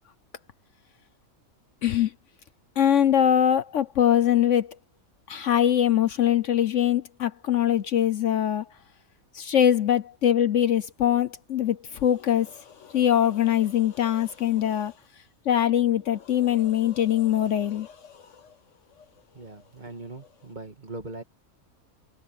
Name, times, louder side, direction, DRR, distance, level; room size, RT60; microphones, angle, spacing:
voice 1, 1.8-2.1 2.8-4.7 5.3-8.7 9.3-14.9 15.5-18.1, left 10 dB, 65° left, 1.0 m, -23 dB
voice 2, 19.3-21.2, right 2 dB, 30° right, 2.1 m, -40 dB
omnidirectional pair, 1.5 m